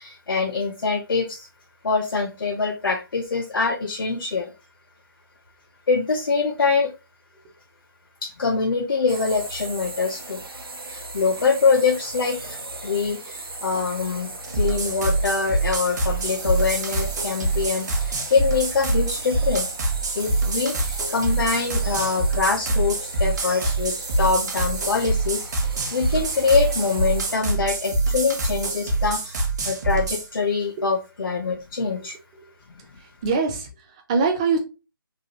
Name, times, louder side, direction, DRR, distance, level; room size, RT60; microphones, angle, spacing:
voice 1, 0.0-1.5 1.8-4.5 5.9-6.9 8.2-10.4 10.9-19.7 20.1-32.1, left 4 dB, 70° left, 3 dB, 0.5 m, -24 dB
sound 1, 9.1-27.3, right 2 dB, 85° right, 0.7 m, -37 dB
sound 2, 14.4-30.3, right 2 dB, 50° right, 0.8 m, -25 dB
voice 2, 33.0-34.6, right 4 dB, 15° right, 4 dB, 0.3 m, -24 dB
3.1 x 2.3 x 2.7 m, 0.30 s
figure-of-eight pair, 150°, 12 cm